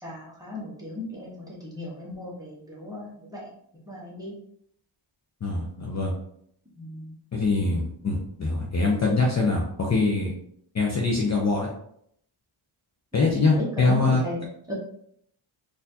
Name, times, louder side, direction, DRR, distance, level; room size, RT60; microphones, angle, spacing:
voice 1, 0.0-3.5 3.8-4.3 6.8-7.1 13.2-14.7, left 1 dB, 10° right, -6 dB, 1.1 m, -36 dB
voice 2, 5.4-6.1 7.3-10.3 10.7-11.7 13.1-14.2, left 3 dB, 35° left, -2 dB, 0.6 m, -23 dB
4.2 x 2.6 x 2.8 m, 0.69 s
wide cardioid pair, 125°, 49 cm